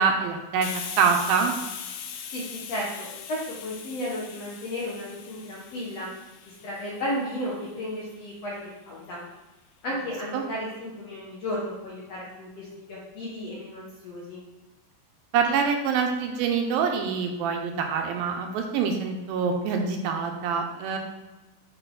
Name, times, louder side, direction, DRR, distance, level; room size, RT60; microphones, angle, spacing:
voice 1, 0.0-1.5 10.3-10.4 15.3-21.0, right 6 dB, 80° right, 3 dB, 2.3 m, -25 dB
Hiss, 0.6-8.0, left 7 dB, 85° left, 1.8 m, -40 dB
voice 2, 2.3-6.1 6.4-8.6 8.8-9.2 9.8-14.4, left 1 dB, 65° left, -5 dB, 1.6 m, -34 dB
8.9 x 4.3 x 3.8 m, 1.1 s
omnidirectional pair, 4.5 m